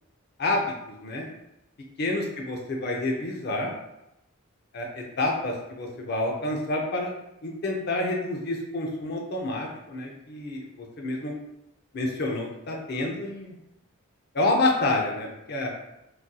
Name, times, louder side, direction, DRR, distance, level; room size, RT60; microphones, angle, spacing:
voice 1, 0.4-1.3 2.0-3.7 4.7-7.1 7.4-11.4 11.9-13.5 14.3-15.7, left 2 dB, 50° left, 0 dB, 0.5 m, -28 dB
3.9 x 2.5 x 2.2 m, 0.86 s
head